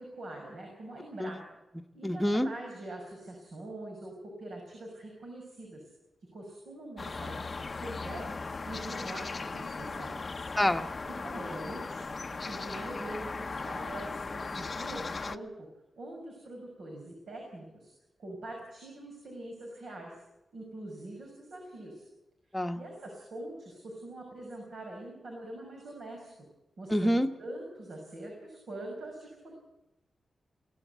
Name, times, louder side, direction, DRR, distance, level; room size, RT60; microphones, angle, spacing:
voice 1, 0.0-1.4 1.9-5.9 6.3-10.4 11.1-12.1 12.4-15.5 16.0-17.9 18.2-20.2 20.5-22.0 22.5-26.3 26.8-29.5, right 1 dB, 70° right, 0 dB, 6.0 m, -44 dB
voice 2, 2.0-2.5 10.6-10.9 22.5-22.8 26.9-27.3, equal, 5° left, 4 dB, 1.2 m, -27 dB
sound 1, 7.0-15.4, left 4 dB, 30° left, 0.7 m, -38 dB
22.5 x 17.0 x 8.2 m, 0.97 s
wide cardioid pair, 170°, 0 cm